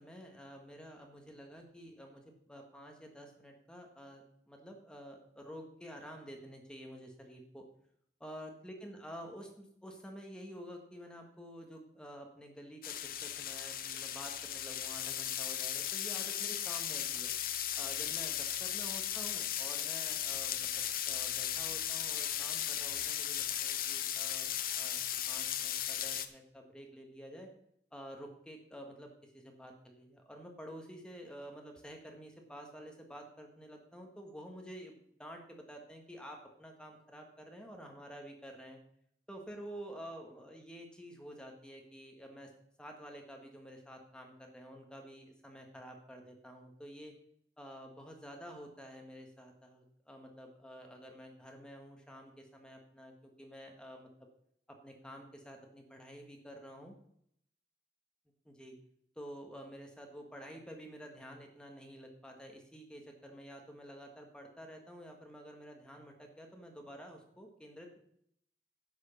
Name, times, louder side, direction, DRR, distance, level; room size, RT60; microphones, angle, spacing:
voice 1, 0.0-7.6 8.2-12.9 13.2-17.3 17.8-20.7 21.1-24.5 24.7-25.0 25.3-27.5 27.9-38.8 39.3-42.5 42.8-47.1 47.6-54.1 54.8-56.9 58.4-58.7 59.1-68.0, equal, 5° left, 2 dB, 1.4 m, -50 dB
sound 1, 12.8-26.3, left 10 dB, 50° left, 0.8 m, -36 dB
10.5 x 6.4 x 7.0 m, 0.71 s
head